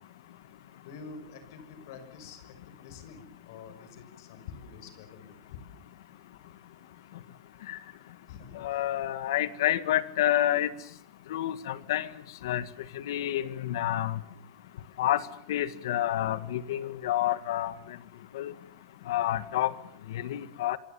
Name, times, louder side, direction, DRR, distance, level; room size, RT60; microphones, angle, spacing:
voice 1, 0.8-5.6 8.3-8.7, left 5 dB, 60° left, 9 dB, 6.2 m, -47 dB
voice 2, 8.6-10.7 11.3-12.1 12.4-12.6 13.1-14.2 15.0-15.2 15.5-17.7 18.3-18.5 19.1-19.7 20.2-20.8, left 13 dB, 85° left, 14 dB, 1.7 m, -28 dB
26.5 x 24.5 x 7.1 m, 0.64 s
supercardioid pair, 170°, 2 cm